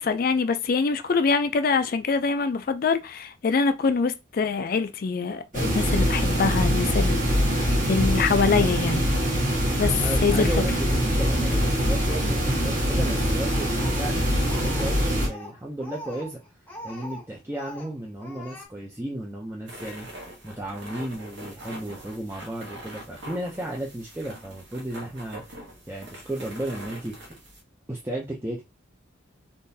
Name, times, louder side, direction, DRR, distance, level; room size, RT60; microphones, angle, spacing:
voice 1, 0.0-9.0 9.8-9.9 10.2-10.5, left 4 dB, 45° left, 0.3 m, -24 dB
sound 1, 5.5-15.3, equal, 40° right, 1.3 m, -23 dB
voice 2, 9.9-16.4 16.8-27.3 27.9-28.6, right 1 dB, 10° right, 0.5 m, -34 dB
Speech, 13.5-14.9 15.2-17.3 17.5-17.9 18.2-18.7, left 1 dB, 10° left, 0.8 m, -42 dB
sound 2, 19.7-27.6, right 1 dB, 65° right, 1.2 m, -43 dB
3.7 x 2.5 x 2.6 m
head